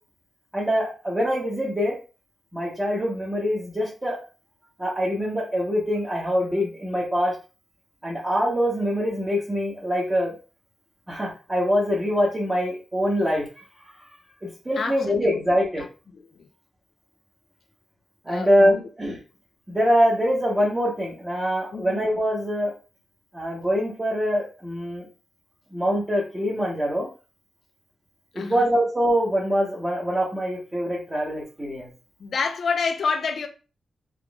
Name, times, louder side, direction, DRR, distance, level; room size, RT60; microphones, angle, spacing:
voice 1, 0.5-2.0 2.5-4.2 4.8-7.3 8.0-10.3 11.1-13.4 14.4-15.8 18.3-19.2 19.7-22.7 23.3-25.1 25.7-27.1 28.3-31.9, equal, 15° right, 1.0 m, -24 dB
voice 2, 14.8-15.4 15.8-15.9 16.1-16.5 18.3-18.9 21.7-22.0 28.4-28.7 32.2-33.5, left 5 dB, 60° left, 0.5 m, -29 dB
3.7 x 3.0 x 2.3 m
wide cardioid pair, 145°, 0 cm